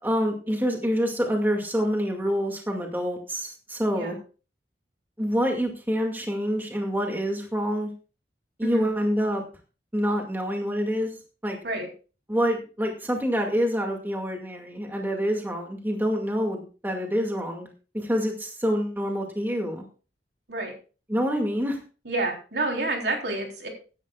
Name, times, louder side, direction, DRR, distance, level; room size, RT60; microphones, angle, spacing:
voice 1, 0.0-4.2 5.2-7.9 8.6-9.4 9.9-11.1 11.4-11.6 12.3-17.7 17.9-19.9 21.1-21.8, equal, 10° right, 2 dB, 2.1 m, -26 dB
voice 2, 22.1-23.7, right 2 dB, 65° right, 2 dB, 3.6 m, -29 dB
17.0 x 11.0 x 2.4 m, 0.35 s
head